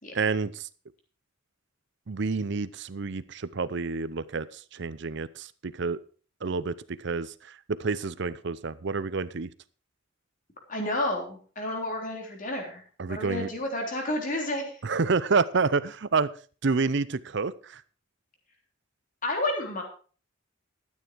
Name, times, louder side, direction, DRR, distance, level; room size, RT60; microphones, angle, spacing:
voice 1, 0.1-0.7 2.1-6.0 6.4-9.5 13.0-13.5 14.8-16.3 16.6-17.8, right 4 dB, 60° right, 16 dB, 0.6 m, -29 dB
voice 2, 10.7-12.8 13.1-14.7 19.2-19.8, left 1 dB, 40° left, 1 dB, 3.5 m, -30 dB
12.5 x 9.6 x 4.6 m, 0.40 s
head